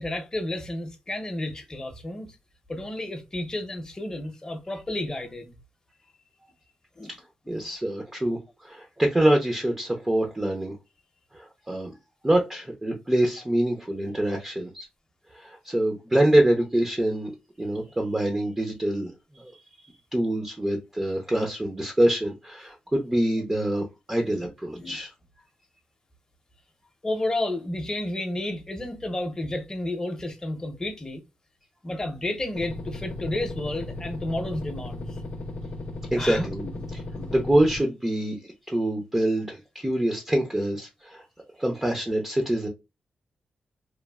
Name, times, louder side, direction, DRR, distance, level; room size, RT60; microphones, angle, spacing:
voice 1, 0.0-2.3 2.7-5.5 7.0-7.1 7.5-7.6 24.3-24.5 24.7-25.0 27.0-31.2 31.8-35.2 36.2-37.3, left 1 dB, 25° left, 0.7 m, -32 dB
voice 2, 7.5-10.8 11.3-11.9 12.2-14.9 15.3-17.3 17.6-19.5 20.1-25.1 36.1-36.6 36.9-37.0 37.3-41.2 41.6-42.7, right 1 dB, 15° right, 0.5 m, -25 dB
sound 1, 32.6-37.8, left 2 dB, 65° left, 0.6 m, -36 dB
3.0 x 2.1 x 2.2 m
wide cardioid pair, 115°, 3 cm